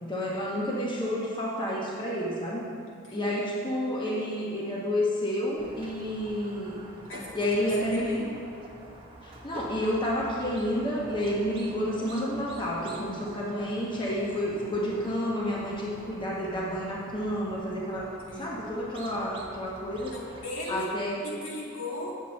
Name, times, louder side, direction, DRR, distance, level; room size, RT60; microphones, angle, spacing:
voice 1, 0.0-2.7 3.1-6.8 7.3-8.2 9.2-18.1 18.4-20.1 20.7-21.2, equal, 25° left, -4 dB, 0.9 m, -30 dB
voice 2, 2.9-3.3 7.1-8.3 18.3-18.5 20.1-20.9 21.2-22.2, left 1 dB, 75° left, -4 dB, 1.9 m, -38 dB
Squeak, 5.6-20.5, right 2 dB, 25° right, 1.0 m, -47 dB
8.2 x 7.4 x 4.2 m, 2.4 s
head